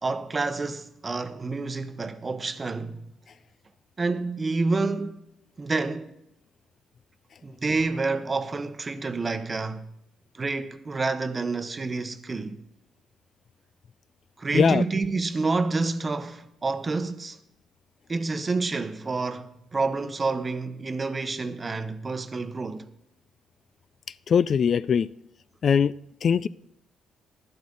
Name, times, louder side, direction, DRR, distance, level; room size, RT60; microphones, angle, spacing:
voice 1, 0.0-3.0 4.0-5.2 5.6-6.2 7.4-9.9 10.3-12.6 14.4-17.4 18.1-22.9, right 3 dB, 30° right, 0.9 m, -28 dB
voice 2, 24.3-25.1 25.6-25.9 26.2-26.5, left 7 dB, 50° left, 0.3 m, -21 dB
12.5 x 11.5 x 3.9 m
cardioid pair, 90°, 0 cm